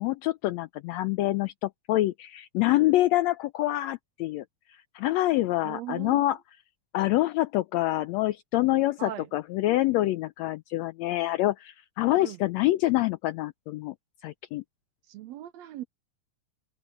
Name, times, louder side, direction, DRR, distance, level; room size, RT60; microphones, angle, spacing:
voice 1, 0.0-4.4 4.9-6.4 6.9-13.9 14.2-14.6, left 16 dB, 85° left, 1.5 m, -26 dB
voice 2, 5.6-6.2 9.0-9.3 12.2-12.4 15.1-15.8, right 13 dB, 75° right, 1.7 m, -38 dB
open air
omnidirectional pair, 3.5 m